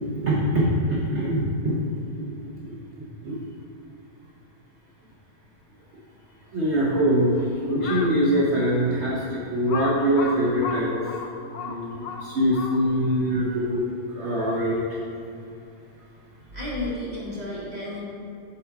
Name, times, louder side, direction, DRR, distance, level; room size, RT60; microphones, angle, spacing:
voice 1, 0.0-1.8 2.1-2.2 2.7-2.8 3.2-3.4 6.5-7.3 7.7-11.1 11.6-13.8 14.1-14.8, equal, 60° right, -4 dB, 0.7 m, -23 dB
Crow, 7.7-8.2 8.8-8.9 9.7-13.1, left 5 dB, 75° left, 1.1 m, -33 dB
voice 2, 16.5-18.0, left 2 dB, 25° left, -8 dB, 1.0 m, -32 dB
8.0 x 4.1 x 4.5 m, 2.6 s
omnidirectional pair, 2.3 m